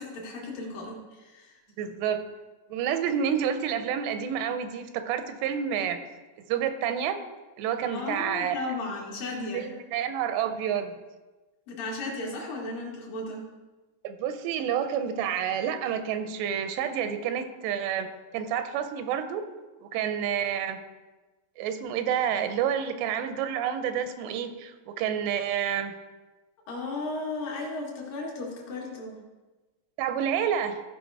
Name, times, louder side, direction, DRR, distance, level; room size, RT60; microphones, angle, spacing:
voice 1, 0.0-1.5 7.9-9.7 11.7-13.4 26.7-29.2, left 2 dB, 60° left, -2 dB, 3.1 m, -35 dB
voice 2, 1.8-2.2 2.7-6.0 6.5-7.2 7.6-8.6 9.5-10.9 14.0-19.4 19.8-20.8 21.6-25.9 30.0-30.8, right 8 dB, 85° right, 9 dB, 2.9 m, -29 dB
15.5 x 5.4 x 4.7 m, 1.2 s
omnidirectional pair, 4.8 m